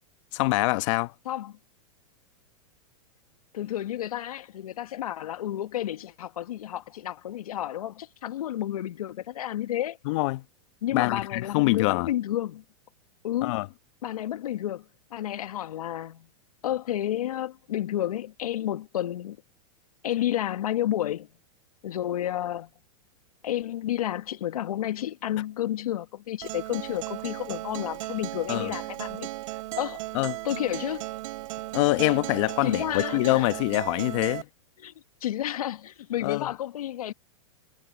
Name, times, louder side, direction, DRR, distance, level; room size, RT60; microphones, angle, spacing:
voice 1, 0.3-1.1 10.0-10.4 10.9-12.1 13.4-13.7 28.5-28.7 30.1-30.4 31.7-34.5 36.2-36.5, left 22 dB, 55° left, 1.0 m, -25 dB
voice 2, 1.2-1.6 3.5-10.0 10.8-12.6 13.2-13.5 14.0-16.3 16.6-19.4 20.0-21.3 21.8-22.7 23.4-29.3 29.8-30.0 30.4-31.1 32.6-33.5 34.8-34.9 35.2-37.1, left 12 dB, 80° left, 1.5 m, -31 dB
Acoustic guitar, 26.4-34.4, right 18 dB, 65° right, 4.3 m, -36 dB
hypercardioid pair, 120°, 19 cm